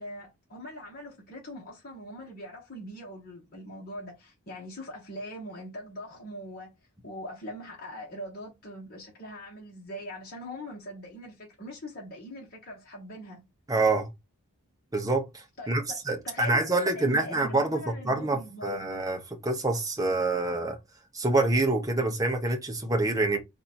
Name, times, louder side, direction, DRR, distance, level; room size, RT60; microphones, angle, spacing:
voice 1, 0.0-6.7 7.0-13.4 15.6-16.0 16.2-18.9, equal, 40° left, 1.4 m, -42 dB
voice 2, 13.7-14.1 14.9-20.8 21.1-23.4, right 2 dB, 15° right, 0.9 m, -26 dB
4.2 x 2.6 x 4.3 m
head